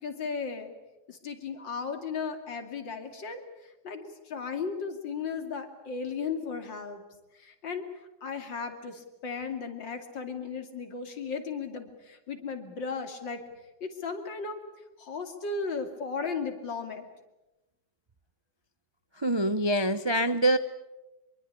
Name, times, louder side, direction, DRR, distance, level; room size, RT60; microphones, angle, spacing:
voice 1, 0.0-0.7 1.1-7.0 7.3-7.9 8.2-13.4 13.8-14.6 15.0-17.1, left 5 dB, 85° left, 6 dB, 3.2 m, -35 dB
voice 2, 19.2-20.6, right 1 dB, 40° right, 11 dB, 0.3 m, -25 dB
25.0 x 23.0 x 8.5 m, 1.0 s
omnidirectional pair, 2.0 m